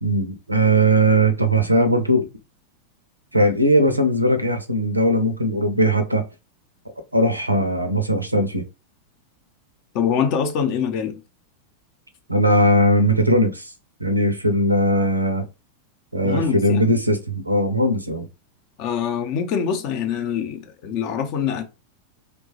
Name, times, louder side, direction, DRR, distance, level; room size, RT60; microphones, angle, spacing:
voice 1, 0.0-2.3 3.3-6.2 7.1-8.6 12.3-13.7 14.0-15.5 16.1-18.3, right 1 dB, 85° right, 0.5 m, -19 dB
voice 2, 9.9-11.2 16.2-16.9 18.8-21.6, left 7 dB, 40° left, 0.6 m, -24 dB
3.0 x 2.2 x 2.7 m
figure-of-eight pair, 90°, 0 cm